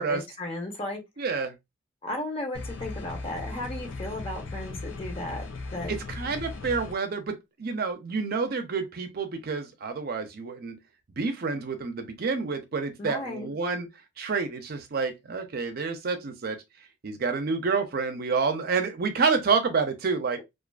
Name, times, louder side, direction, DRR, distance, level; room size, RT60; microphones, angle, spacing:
voice 1, 0.0-1.0 2.0-5.4 5.7-6.0 13.0-13.5, left 1 dB, 30° left, 0.8 m, -35 dB
voice 2, 1.2-1.5 5.9-10.8 11.2-13.9 14.2-16.6 17.0-20.4, right 4 dB, 55° right, 0.5 m, -28 dB
sound 1, 2.5-6.9, left 3 dB, 90° left, 0.4 m, -37 dB
2.4 x 2.4 x 2.3 m
head